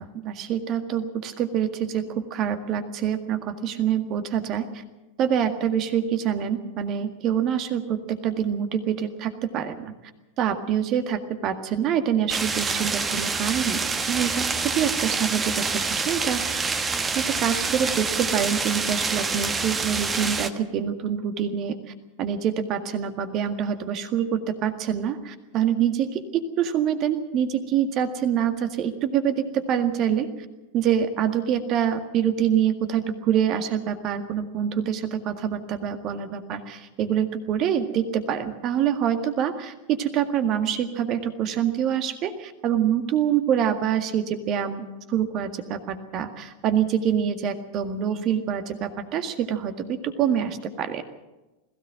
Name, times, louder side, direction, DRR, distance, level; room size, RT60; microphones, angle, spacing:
voice 1, 0.0-4.8 5.2-9.9 10.4-16.7 17.2-21.8 22.2-30.3 30.7-51.0, right 9 dB, 35° right, 8 dB, 1.8 m, -26 dB
sound 1, 12.3-20.5, right 4 dB, 15° right, 1.2 m, -27 dB
21.0 x 16.0 x 7.7 m, 1.1 s
figure-of-eight pair, 90°, 0 cm